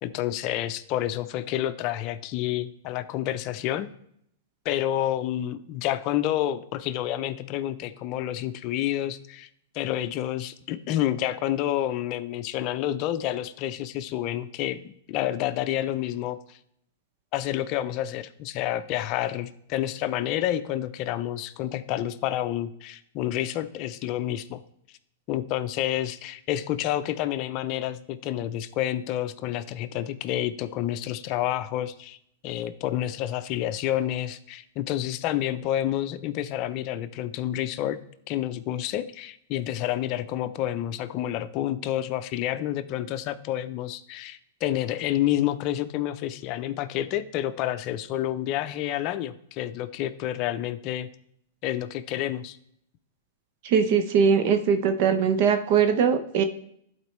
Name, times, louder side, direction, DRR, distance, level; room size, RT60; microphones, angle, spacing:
voice 1, 0.0-3.9 4.6-9.5 9.7-16.6 17.3-24.6 25.3-32.2 32.4-38.0 38.3-51.1 51.6-52.6, left 12 dB, 40° left, 11 dB, 0.5 m, -29 dB
voice 2, 53.6-56.4, right 6 dB, 50° right, 8 dB, 0.7 m, -21 dB
11.5 x 4.4 x 3.2 m, 0.70 s
hypercardioid pair, 135°, 0 cm